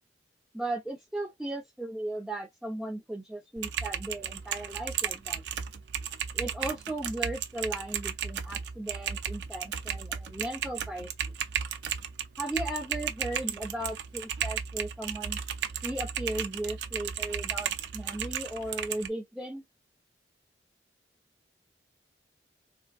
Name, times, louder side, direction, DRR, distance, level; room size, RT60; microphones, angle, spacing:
voice 1, 0.5-5.4 6.3-11.3 12.4-15.4 15.8-19.6, right 1 dB, 5° right, 0.8 m, -36 dB
Typing, 3.6-19.1, right 8 dB, 80° right, 0.6 m, -35 dB
3.6 x 2.4 x 2.4 m
head